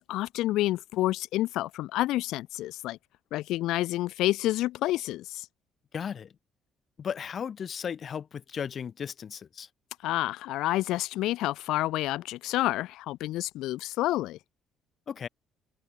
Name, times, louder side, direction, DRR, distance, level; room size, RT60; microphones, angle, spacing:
voice 1, 0.0-3.0 3.3-5.5 10.0-14.4, left 16 dB, 80° left, 1.2 m, -29 dB
voice 2, 5.9-6.3 7.0-9.7 15.1-15.3, left 7 dB, 35° left, 1.3 m, -35 dB
cardioid pair, 150°, 0 cm